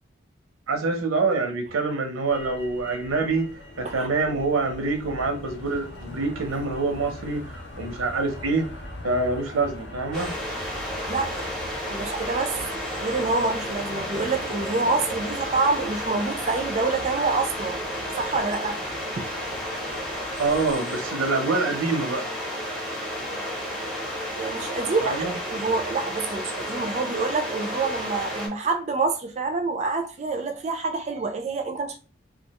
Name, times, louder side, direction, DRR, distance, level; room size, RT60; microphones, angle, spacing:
voice 1, 0.7-3.5 3.8-8.7 9.0-10.4 20.4-22.3 25.0-25.3, right 3 dB, 90° right, 0.7 m, -26 dB
Motor vehicle (road), 2.3-20.8, left 1 dB, 55° left, 0.6 m, -42 dB
sound 1, 10.1-28.5, equal, 5° left, 0.6 m, -32 dB
voice 2, 11.1-11.5 11.9-12.6 13.0-17.8 18.2-18.8 19.2-19.3 24.4-25.2 25.5-32.0, right 3 dB, 35° right, 0.3 m, -27 dB
2.3 x 2.2 x 2.8 m
head